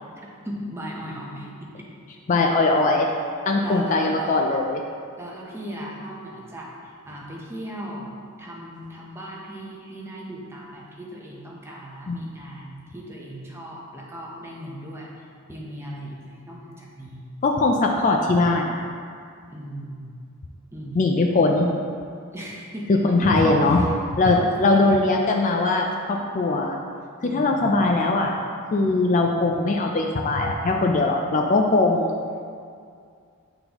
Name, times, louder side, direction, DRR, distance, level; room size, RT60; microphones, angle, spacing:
voice 1, 0.2-1.9 3.6-4.4 5.2-8.1 8.4-17.2 19.5-20.2 20.7-21.2 22.3-23.0 23.4-23.9 24.3-25.0 27.2-27.9, equal, 10° right, -3 dB, 0.7 m, -37 dB
voice 2, 2.3-3.1 3.5-4.8 12.1-12.2 17.4-18.8 21.0-21.7 22.9-23.8 24.1-26.8 27.2-28.3 28.7-32.1, left 2 dB, 35° left, 1 dB, 0.3 m, -20 dB
8.6 x 3.9 x 2.9 m, 2.3 s
head